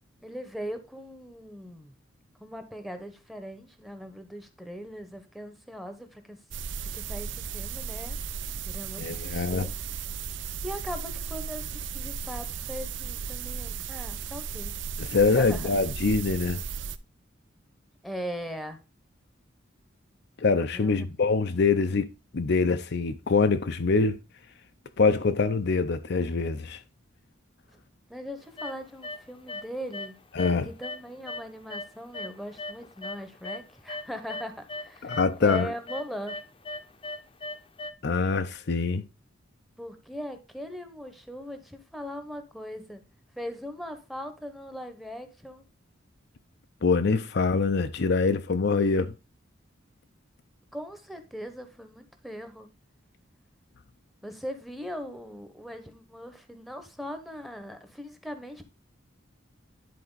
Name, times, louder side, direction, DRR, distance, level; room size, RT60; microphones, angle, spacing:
voice 1, 0.2-1.9 2.4-6.4 6.8-8.2 8.6-9.9 10.6-14.8 15.2-15.7 18.0-18.8 20.7-21.1 28.1-30.2 30.6-36.4 39.8-43.0 43.4-45.6 50.7-52.7 54.2-58.6, equal, ahead, 1.0 m, -40 dB
sound 1, 6.5-17.0, right 6 dB, 65° right, 0.6 m, -35 dB
voice 2, 9.0-9.7 15.0-16.6 20.4-22.1 22.3-24.2 25.0-26.8 30.3-30.7 35.0-35.7 38.0-39.0 46.8-49.1, left 4 dB, 60° left, 0.6 m, -24 dB
sound 2, 28.6-29.2 29.5-30.1 30.4-33.6 33.9-37.9, left 2 dB, 30° left, 0.8 m, -38 dB
10.5 x 4.2 x 4.0 m
head